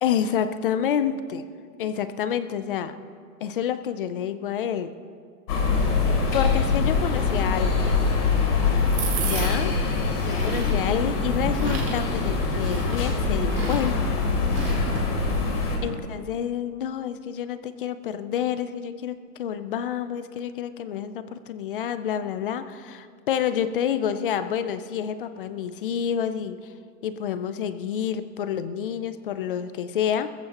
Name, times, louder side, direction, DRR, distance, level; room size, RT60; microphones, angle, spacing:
voice 1, 0.0-1.4 1.8-3.0 3.4-5.0 6.3-8.1 9.2-14.3 15.8-26.7 27.0-30.3, left 9 dB, 35° left, 13 dB, 0.4 m, -28 dB
sound 1, 5.5-15.8, left 4 dB, 70° left, 3.2 m, -24 dB
sound 2, 7.8-15.3, right 4 dB, 25° right, 2.7 m, -36 dB
21.0 x 14.5 x 2.9 m, 2.1 s
hypercardioid pair, 155°, 47 cm